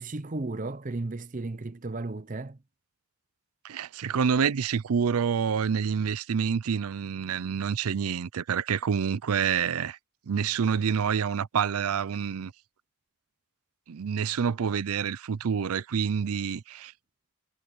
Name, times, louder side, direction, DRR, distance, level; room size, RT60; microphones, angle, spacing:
voice 1, 0.0-2.6, right 2 dB, 35° right, 0.6 m, -34 dB
voice 2, 3.6-10.0 10.3-12.5 13.9-16.9, right 7 dB, 80° right, 0.5 m, -27 dB
head